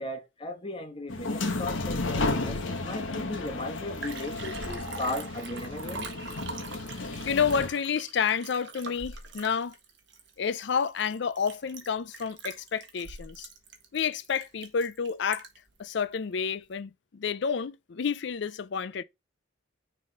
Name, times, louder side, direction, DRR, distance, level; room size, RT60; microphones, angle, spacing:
voice 1, 0.0-6.1, left 1 dB, 30° left, 1.3 m, -37 dB
sound 1, 1.1-7.7, left 2 dB, 75° left, 1.3 m, -33 dB
Liquid, 3.5-3.6 3.8-15.7 16.2-16.3, right 3 dB, 65° right, 1.4 m, -43 dB
voice 2, 7.3-9.7 10.4-13.5 13.9-15.5 15.8-19.0, left 6 dB, 60° left, 0.5 m, -29 dB
6.4 x 3.6 x 4.8 m
head